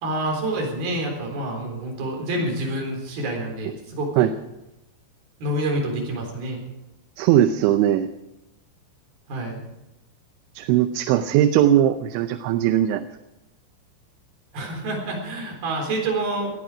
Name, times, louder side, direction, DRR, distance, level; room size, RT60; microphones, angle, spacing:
voice 1, 0.0-4.3 5.4-6.6 9.3-9.6 14.5-16.6, right 1 dB, 55° right, 0 dB, 5.6 m, -27 dB
voice 2, 7.2-8.1 10.6-13.0, right 11 dB, 80° right, 10 dB, 2.9 m, -19 dB
19.5 x 14.0 x 5.0 m, 0.94 s
omnidirectional pair, 5.5 m